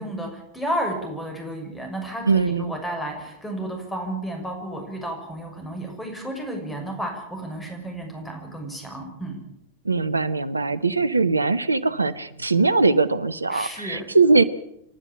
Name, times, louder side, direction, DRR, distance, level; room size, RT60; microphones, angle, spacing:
voice 1, 0.0-9.4 13.5-14.0, right 1 dB, 10° left, 3 dB, 6.5 m, -32 dB
voice 2, 2.3-2.7 9.8-14.4, right 3 dB, 80° right, 14 dB, 1.0 m, -21 dB
27.5 x 12.0 x 8.8 m, 0.78 s
figure-of-eight pair, 90°, 0 cm